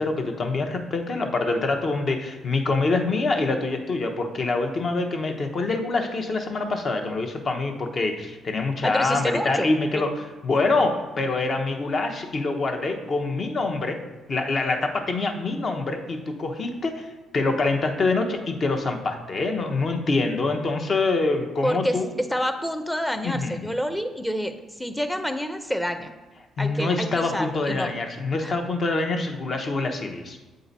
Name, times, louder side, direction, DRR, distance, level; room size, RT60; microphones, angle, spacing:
voice 1, 0.0-14.0 14.3-22.1 23.2-23.6 26.6-30.4, left 3 dB, 45° left, 4 dB, 0.9 m, -25 dB
voice 2, 8.8-10.0 21.6-22.0 22.3-26.1 26.6-27.9 28.4-28.5, equal, 5° left, 8 dB, 0.6 m, -28 dB
7.9 x 3.9 x 4.0 m, 1.2 s
cardioid pair, 90°, 0 cm